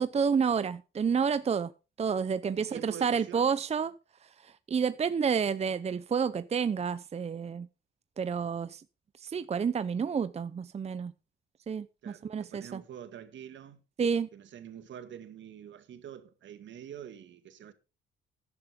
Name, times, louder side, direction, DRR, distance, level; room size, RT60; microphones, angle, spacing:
voice 1, 0.0-1.7 2.0-3.9 4.4-7.7 8.2-8.8 9.2-11.1 11.7-12.8 14.0-14.3, right 6 dB, 30° right, 0.6 m, -29 dB
voice 2, 2.6-3.5 12.0-13.8 14.3-17.7, right 9 dB, 70° right, 1.9 m, -46 dB
14.0 x 11.0 x 3.7 m
cardioid pair, 90°, 20 cm